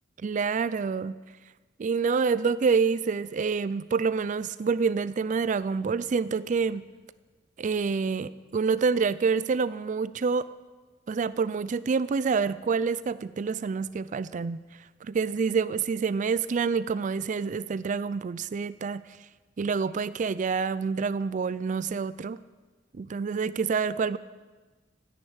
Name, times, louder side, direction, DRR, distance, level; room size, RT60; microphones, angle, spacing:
voice 1, 0.2-1.2 1.8-6.8 7.6-10.5 11.1-14.6 15.0-19.0 19.6-22.4 22.9-24.2, right 5 dB, 40° right, 16 dB, 0.4 m, -27 dB
13.0 x 11.0 x 8.7 m, 1.3 s
head